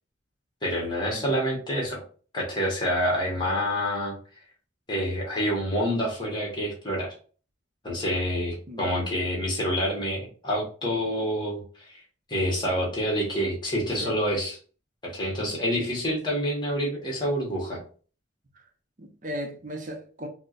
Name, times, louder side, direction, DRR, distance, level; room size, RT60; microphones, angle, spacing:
voice 1, 0.6-2.0 2.3-4.1 4.9-7.1 7.8-12.0 12.3-14.6 15.0-17.8, equal, 20° left, 1.0 m, -27 dB
voice 2, 19.0-20.3, equal, 40° right, 0.6 m, -37 dB
4.2 x 2.0 x 2.4 m
head